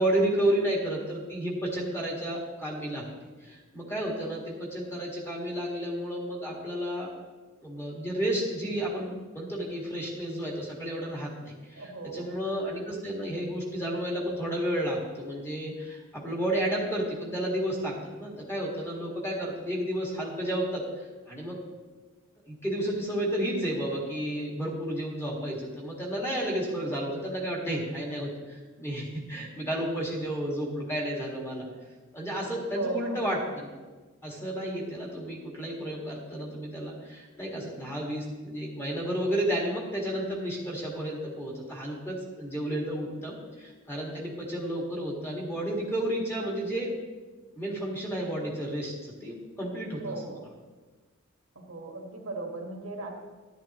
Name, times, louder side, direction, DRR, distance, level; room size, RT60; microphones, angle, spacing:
voice 1, 0.0-3.1 3.4-7.1 7.6-21.6 22.5-31.7 32.1-33.7 34.2-46.9 47.6-50.2, right 1 dB, 10° left, -2 dB, 1.8 m, -32 dB
voice 2, 11.7-12.3 32.7-33.2 50.0-50.4 51.5-53.1, right 3 dB, 90° right, 1 dB, 1.6 m, -36 dB
10.5 x 10.0 x 3.0 m, 1.3 s
head